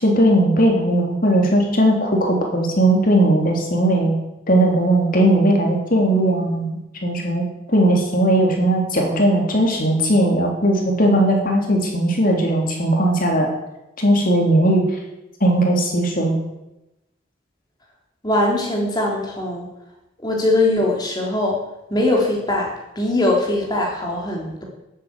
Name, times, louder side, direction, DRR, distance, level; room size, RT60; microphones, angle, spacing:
voice 1, 0.0-4.1 4.5-7.4 7.7-13.5 14.0-14.8 15.4-16.3, right 1 dB, 45° left, 1 dB, 3.4 m, -18 dB
voice 2, 18.2-19.7 20.2-21.6 21.9-22.7 22.9-24.6, left 2 dB, 20° left, -1 dB, 3.4 m, -21 dB
12.5 x 8.8 x 8.4 m, 0.94 s
head